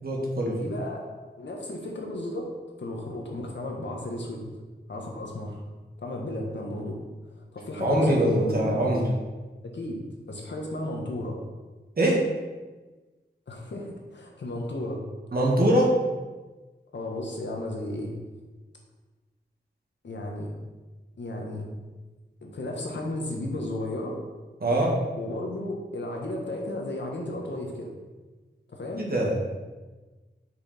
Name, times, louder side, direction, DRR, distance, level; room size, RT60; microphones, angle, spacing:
voice 1, 0.0-0.6 7.8-9.1 12.0-12.2 15.3-15.9 24.6-24.9 29.0-29.3, right 1 dB, 55° right, -3 dB, 1.9 m, -23 dB
voice 2, 0.6-1.1 1.4-2.5 2.8-4.4 4.9-5.6 6.0-7.0 7.5-8.9 9.7-10.0 10.3-11.4 13.5-15.0 16.9-18.1 20.0-20.5 21.2-21.6 22.4-24.2 25.2-27.9 28.7-29.0, left 1 dB, 75° left, 0 dB, 1.5 m, -34 dB
6.5 x 6.3 x 4.4 m, 1.3 s
wide cardioid pair, 105°, 18 cm